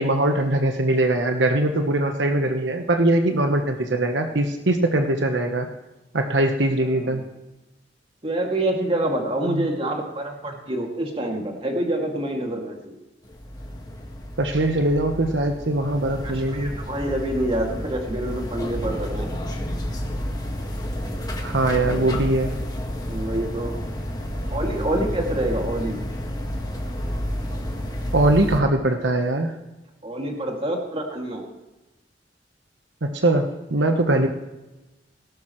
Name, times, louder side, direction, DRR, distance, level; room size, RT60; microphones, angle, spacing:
voice 1, 0.0-5.7 6.1-7.2 9.5-9.6 14.4-16.7 21.4-22.5 27.5-27.6 28.1-29.5 33.0-34.3, right 1 dB, 85° right, 5 dB, 1.2 m, -21 dB
voice 2, 6.8-7.2 8.2-12.9 16.2-19.3 23.1-23.8 24.5-26.0 30.0-31.5 34.2-34.3, right 1 dB, 35° right, 1 dB, 2.5 m, -27 dB
sound 1, 13.2-28.6, equal, 25° left, 1.8 m, -30 dB
18.0 x 12.0 x 3.2 m, 1.0 s
head